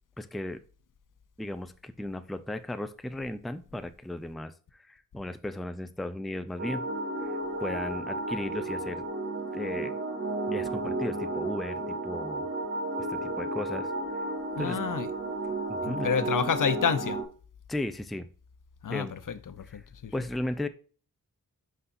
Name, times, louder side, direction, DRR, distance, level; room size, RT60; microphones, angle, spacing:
voice 1, 0.2-0.6 1.4-6.8 7.2-9.0 9.5-9.9 10.5-12.5 13.1-13.9 14.6-14.8 15.7-16.1 17.7-18.3 18.9-19.1 19.6-19.8 20.1-20.7, left 1 dB, ahead, 0.4 m, -35 dB
sound 1, 6.6-17.2, right 2 dB, 40° right, 1.8 m, -33 dB
voice 2, 14.6-15.1 15.8-17.2 18.8-20.1, left 7 dB, 65° left, 0.7 m, -29 dB
11.5 x 4.1 x 2.6 m
wide cardioid pair, 135°, 35 cm